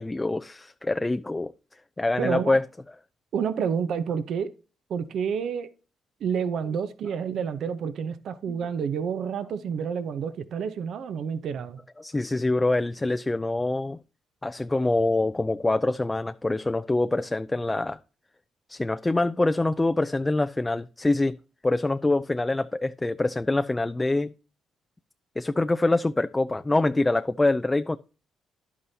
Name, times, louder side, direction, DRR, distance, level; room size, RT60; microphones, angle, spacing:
voice 1, 0.0-1.5 2.0-2.6 8.5-8.6 12.0-14.0 14.4-18.0 18.7-21.4 21.6-24.3 25.4-28.0, left 2 dB, 15° left, 0.4 m, -25 dB
voice 2, 2.2-2.6 3.3-4.5 4.9-5.7 6.2-11.8, right 7 dB, 65° right, 0.9 m, -29 dB
11.0 x 8.5 x 2.8 m
cardioid pair, 90°, 0 cm